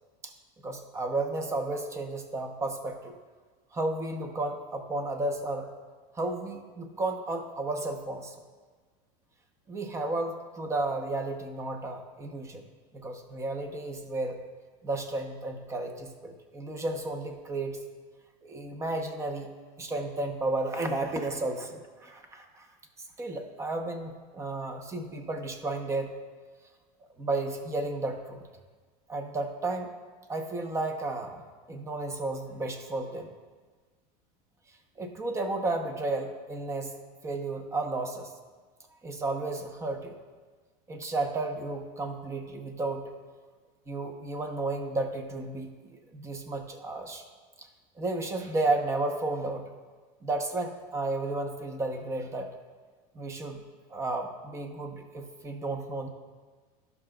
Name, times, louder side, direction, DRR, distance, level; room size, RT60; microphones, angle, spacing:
voice 1, 0.6-3.1 3.7-5.7 6.1-8.4 9.7-12.6 12.9-14.4 14.8-17.8 18.4-19.5 19.8-22.7 23.0-26.2 27.2-28.4 29.1-29.9 30.3-31.4 31.7-33.3 35.0-36.9 37.2-38.3 39.0-40.2 40.9-43.1 43.9-47.2 47.6-47.7 48.0-49.7 50.2-52.6 53.1-56.1, right 2 dB, 15° right, 5 dB, 0.7 m, -33 dB
15.0 x 5.9 x 2.2 m, 1.4 s
supercardioid pair, 150°, 19 cm